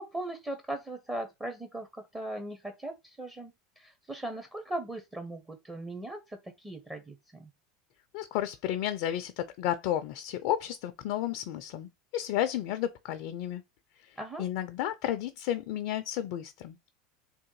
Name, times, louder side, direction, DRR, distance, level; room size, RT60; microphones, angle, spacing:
voice 1, 0.0-7.5 14.2-14.4, right 1 dB, 15° right, 0.7 m, -39 dB
voice 2, 8.1-13.6 14.0-16.9, left 12 dB, 65° left, 0.3 m, -32 dB
3.5 x 2.2 x 3.1 m
hypercardioid pair, 85°, 0 cm